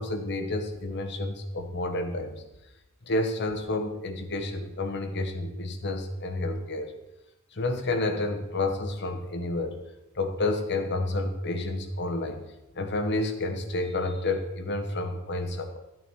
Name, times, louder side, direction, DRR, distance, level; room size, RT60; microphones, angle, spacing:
voice 1, 0.0-2.4 3.0-6.9 7.5-9.8 10.1-12.5 12.7-15.8, left 2 dB, 50° left, 5 dB, 1.3 m, -30 dB
12.5 x 8.1 x 4.5 m, 0.95 s
head